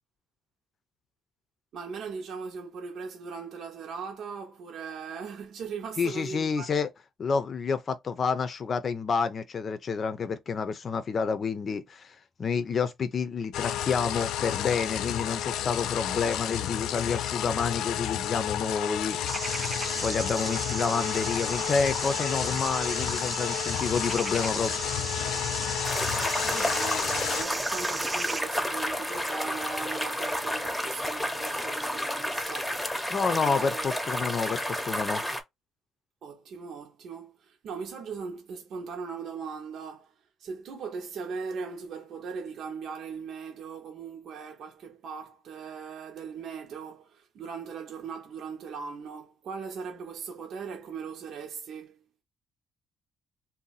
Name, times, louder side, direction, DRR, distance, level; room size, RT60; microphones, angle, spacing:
voice 1, 1.7-6.7 20.4-20.5 21.0-21.1 26.4-33.9 36.2-40.1 40.4-52.1, right 5 dB, 70° right, 0.8 m, -39 dB
voice 2, 6.0-6.9 7.2-12.1 12.4-19.4 20.0-24.8 33.1-35.2, left 5 dB, 50° left, 0.6 m, -29 dB
sound 1, 13.5-27.4, left 11 dB, 85° left, 0.3 m, -31 dB
sound 2, 19.3-28.4, right 3 dB, 25° right, 0.4 m, -35 dB
sound 3, 25.8-35.4, equal, 10° left, 0.8 m, -31 dB
2.7 x 2.2 x 4.0 m
cardioid pair, 90°, 0 cm